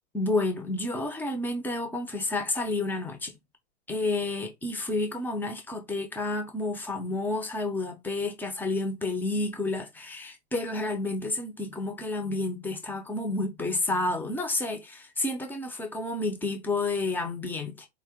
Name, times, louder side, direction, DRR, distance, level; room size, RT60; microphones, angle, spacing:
voice 1, 0.1-3.3 3.9-17.9, left 2 dB, 5° left, 0.8 m, -30 dB
4.7 x 2.4 x 3.6 m
hypercardioid pair, 140°, 34 cm